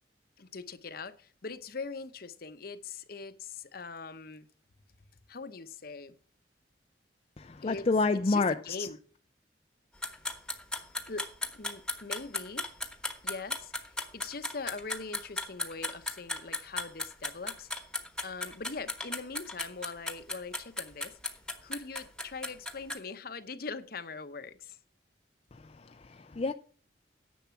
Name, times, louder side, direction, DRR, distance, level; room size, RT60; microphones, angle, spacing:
voice 1, 0.4-4.5 5.3-6.2 7.6-7.9 8.1-9.0 11.1-12.7 13.2-17.7 18.2-24.8, left 4 dB, 55° left, 0.9 m, -42 dB
voice 2, 7.4-8.9 25.5-26.5, left 3 dB, 35° left, 0.4 m, -29 dB
sound 1, 10.0-23.0, left 2 dB, 5° left, 1.1 m, -36 dB
10.5 x 7.2 x 5.8 m
head